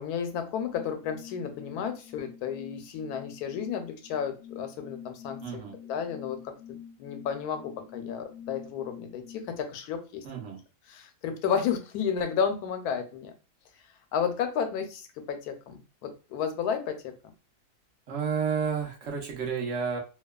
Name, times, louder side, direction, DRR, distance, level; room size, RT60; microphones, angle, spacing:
voice 1, 0.0-5.6 5.9-10.2 10.9-13.3 14.1-17.1, left 7 dB, 85° left, 7 dB, 1.1 m, -32 dB
sound 1, 0.7-9.6, left 9 dB, 65° left, 0.9 m, -46 dB
voice 2, 5.4-5.7 10.2-10.6 18.1-20.0, right 6 dB, 55° right, 0 dB, 1.0 m, -31 dB
2.9 x 2.2 x 2.2 m, 0.33 s
omnidirectional pair, 1.6 m